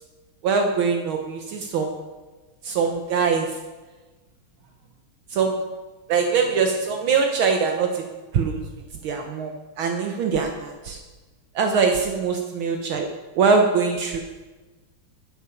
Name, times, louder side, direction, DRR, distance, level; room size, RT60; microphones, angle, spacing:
voice 1, 0.4-2.0 2.6-3.6 5.3-5.6 6.1-8.1 8.3-8.6 9.0-11.0 11.6-13.1 13.4-14.2, right 5 dB, 75° right, 3 dB, 1.7 m, -22 dB
12.0 x 8.5 x 5.8 m, 1.2 s
omnidirectional pair, 2.4 m